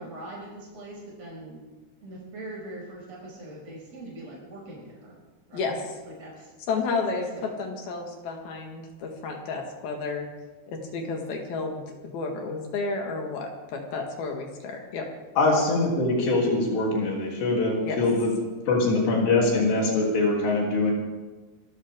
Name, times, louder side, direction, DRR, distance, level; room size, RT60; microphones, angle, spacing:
voice 1, 0.0-1.6 2.0-5.1 5.5-5.8 6.1-6.5 7.3-7.5, right 1 dB, 40° right, -4 dB, 7.1 m, -41 dB
voice 2, 5.5-6.0 6.7-10.3 10.7-15.1 17.8-18.0, left 4 dB, 70° left, 2 dB, 3.6 m, -31 dB
voice 3, 15.4-18.3 18.7-20.9, left 2 dB, 90° left, -2 dB, 5.4 m, -23 dB
27.0 x 13.0 x 3.7 m, 1.2 s
omnidirectional pair, 4.7 m